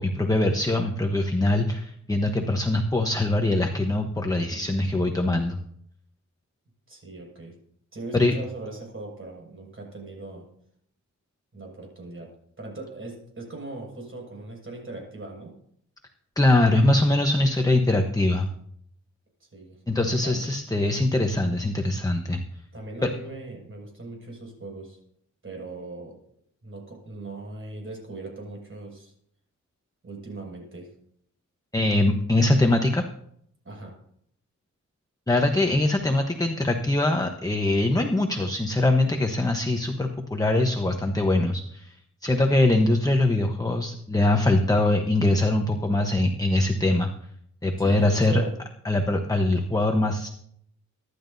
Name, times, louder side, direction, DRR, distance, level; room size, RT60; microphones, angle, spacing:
voice 1, 0.0-5.6 8.1-8.3 16.4-18.5 19.9-22.4 23.0-23.1 31.7-33.0 35.3-41.9 42.2-47.1 47.6-48.4 48.8-50.3, left 2 dB, 10° left, 4 dB, 1.1 m, -22 dB
voice 2, 6.9-7.5 7.9-10.4 11.5-12.3 12.6-15.6 19.4-19.8 20.2-20.5 22.7-25.0 25.4-26.2 26.6-29.1 30.0-30.9 33.6-33.9 47.8-48.5, right 2 dB, 45° right, 0 dB, 6.2 m, -39 dB
24.5 x 11.0 x 2.7 m, 0.69 s
wide cardioid pair, 115°, 31 cm